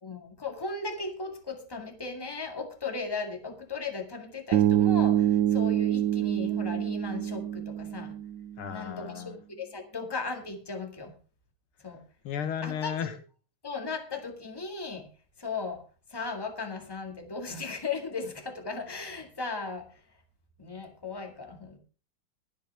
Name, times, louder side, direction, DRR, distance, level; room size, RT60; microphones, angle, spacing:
voice 1, 0.0-8.1 8.7-11.1 11.8-12.0 12.6-13.1 13.6-15.1 15.4-15.8 16.1-19.9 20.6-21.8, left 4 dB, 10° left, 5 dB, 1.8 m, -37 dB
Bass guitar, 4.5-8.6, right 11 dB, 65° right, 1.4 m, -26 dB
voice 2, 8.6-9.4 12.2-13.2, left 8 dB, 85° left, 10 dB, 2.1 m, -34 dB
22.0 x 7.5 x 3.4 m, 0.36 s
omnidirectional pair, 2.3 m